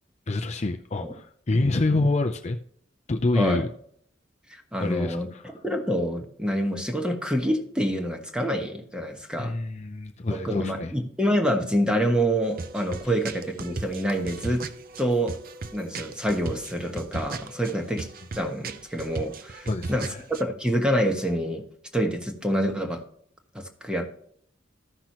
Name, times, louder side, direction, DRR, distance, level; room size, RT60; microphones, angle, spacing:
voice 1, 0.3-2.6 3.1-3.7 4.8-5.4 9.4-10.9 19.7-20.2, left 2 dB, 35° left, 5 dB, 0.5 m, -27 dB
voice 2, 3.3-3.6 4.5-9.5 10.3-14.6 15.0-15.4 15.7-21.7 21.9-23.0 23.5-24.1, equal, 5° right, 4 dB, 1.2 m, -27 dB
sound 1, 12.4-20.4, right 3 dB, 50° right, 0.6 m, -37 dB
14.5 x 5.9 x 3.0 m, 0.64 s
head